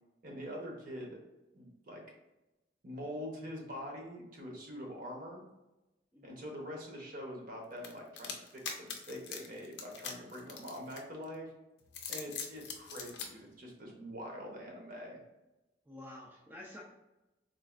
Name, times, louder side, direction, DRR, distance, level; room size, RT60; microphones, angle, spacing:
voice 1, 0.2-1.2 1.5-2.0 2.8-5.4 6.2-11.5 12.1-15.2, equal, 50° right, 0 dB, 0.8 m, -44 dB
sound 1, 7.8-11.3 11.8-13.3, left 6 dB, 70° left, 0.5 m, -42 dB
voice 2, 15.9-16.8, left 1 dB, 10° right, -4 dB, 0.4 m, -49 dB
4.0 x 2.5 x 2.4 m, 0.99 s
head